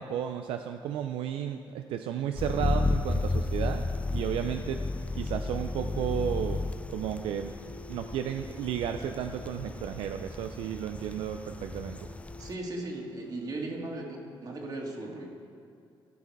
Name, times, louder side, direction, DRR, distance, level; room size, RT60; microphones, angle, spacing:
voice 1, 0.0-3.9 4.1-4.8 5.1-7.5 7.9-12.1, right 9 dB, 85° right, 7 dB, 0.4 m, -33 dB
sound 1, 2.4-12.5, left 2 dB, 15° left, 0.4 m, -33 dB
sound 2, 3.6-10.1 11.6-14.0, left 2 dB, 60° left, 2.0 m, -52 dB
voice 2, 12.4-15.3, right 2 dB, 45° right, 0 dB, 2.0 m, -37 dB
15.0 x 5.6 x 4.7 m, 2.5 s
cardioid pair, 85°, 9 cm